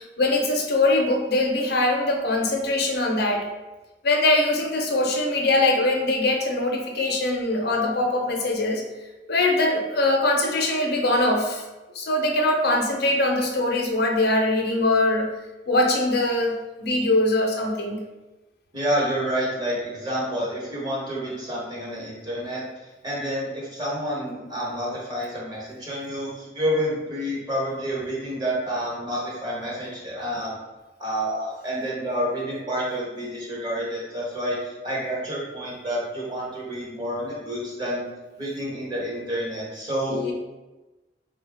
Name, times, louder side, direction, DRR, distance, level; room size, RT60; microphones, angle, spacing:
voice 1, 0.0-3.5 4.0-8.8 9.3-11.6 11.9-15.3 15.7-16.5 16.8-18.0 40.1-40.3, left 2 dB, 60° left, 1 dB, 0.6 m, -22 dB
voice 2, 18.7-22.7 23.0-30.6 31.0-38.0 38.4-40.2, equal, 25° right, -5 dB, 1.1 m, -29 dB
4.2 x 2.2 x 3.4 m, 1.1 s
head